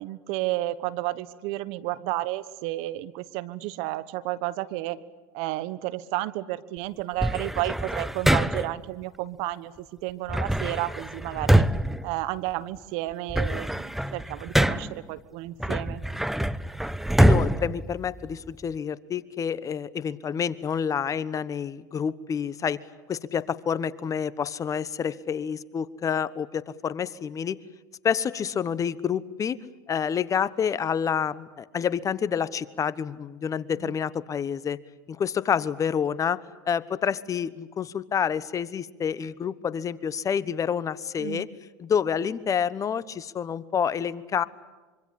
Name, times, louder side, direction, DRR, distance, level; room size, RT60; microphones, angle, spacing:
voice 1, 0.0-5.0 5.3-11.7 12.0-16.0 33.8-33.9 41.2-41.4, right 17 dB, 65° right, 17 dB, 1.3 m, -32 dB
sound 1, 7.2-8.8 10.3-12.8 13.1-15.1 15.6-18.6, right 1 dB, 5° right, 0.8 m, -25 dB
voice 2, 17.2-22.8 23.1-27.6 28.0-29.6 29.9-34.8 35.1-36.4 36.7-41.5 41.8-44.4, left 7 dB, 30° left, 17 dB, 1.2 m, -28 dB
25.5 x 25.0 x 8.6 m, 1.3 s
hypercardioid pair, 100°, 11 cm